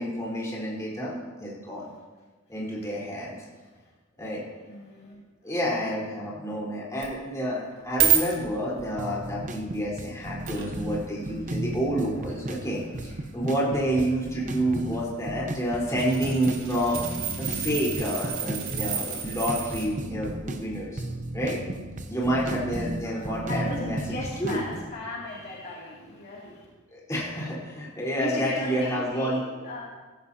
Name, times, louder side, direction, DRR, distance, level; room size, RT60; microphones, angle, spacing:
voice 1, 0.0-1.9 2.5-3.4 4.2-4.4 5.4-17.0 17.4-21.0 21.3-21.6 22.1-24.0 24.4-24.6 26.9-29.4, equal, 15° left, -6 dB, 4.0 m, -29 dB
voice 2, 3.4-3.9 4.6-5.5 23.0-26.7 28.2-29.9, left 1 dB, 45° left, -6 dB, 2.6 m, -37 dB
sound 1, 7.0-7.1 7.6-9.0 9.7-9.8 10.5-11.0 11.3-11.4 12.2-13.2 14.4-14.7 14.9-15.0 15.6-19.9 23.7-23.8, right 10 dB, 65° right, 2.7 m, -29 dB
sound 2, 9.0-24.9, right 1 dB, 35° right, 0.8 m, -35 dB
16.5 x 15.5 x 2.8 m, 1.3 s
head